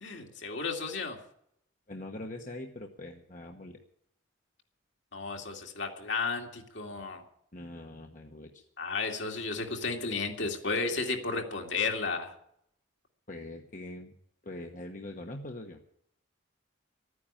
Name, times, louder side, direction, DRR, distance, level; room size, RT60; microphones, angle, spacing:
voice 1, 0.0-1.2 5.1-7.2 8.8-12.3, left 4 dB, 65° left, 2 dB, 2.4 m, -33 dB
voice 2, 1.9-3.8 7.5-8.6 13.3-14.1 14.4-15.8, left 1 dB, 40° left, 3 dB, 1.1 m, -42 dB
14.0 x 9.6 x 8.8 m, 0.72 s
head